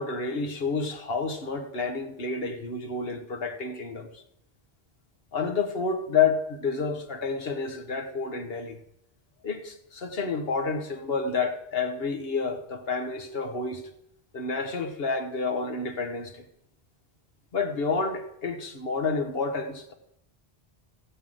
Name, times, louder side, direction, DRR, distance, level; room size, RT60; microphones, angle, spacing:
voice 1, 0.0-4.2 5.3-8.8 9.4-13.9 14.3-16.4 17.5-19.9, left 4 dB, 65° left, 1.4 m, -29 dB
14.5 x 5.7 x 7.6 m
omnidirectional pair, 1.1 m